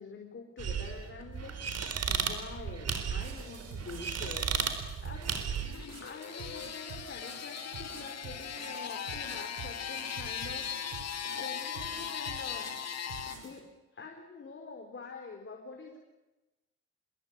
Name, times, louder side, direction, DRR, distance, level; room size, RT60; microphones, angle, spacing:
voice 1, 0.0-5.4 6.0-12.7 13.4-16.0, left 4 dB, 40° left, 2 dB, 4.6 m, -46 dB
sound 1, 0.6-5.8, right 6 dB, 55° right, 4.1 m, -34 dB
sound 2, 2.9-13.6, right 6 dB, 80° right, 7.1 m, -48 dB
sound 3, 5.5-13.4, left 8 dB, 60° left, 2.9 m, -39 dB
27.0 x 21.5 x 9.0 m, 1.0 s
cardioid pair, 90°, 30 cm